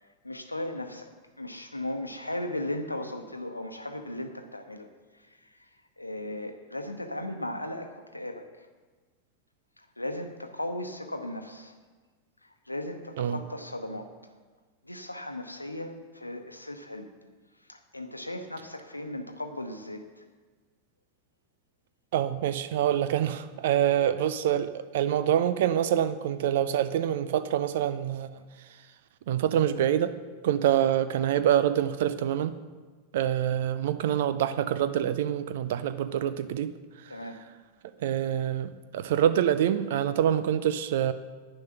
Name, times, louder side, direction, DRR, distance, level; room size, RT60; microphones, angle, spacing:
voice 1, 0.2-1.1 1.4-4.9 6.0-8.5 10.0-11.7 12.7-14.1 14.9-17.1 17.7-20.0 37.1-37.4, left 1 dB, 85° left, 7 dB, 1.0 m, -36 dB
voice 2, 22.1-28.3 29.3-30.1 30.4-32.5 33.1-36.7 38.0-41.1, right 10 dB, 55° right, 13 dB, 0.6 m, -26 dB
10.5 x 9.9 x 6.0 m, 1.4 s
figure-of-eight pair, 90°, 0 cm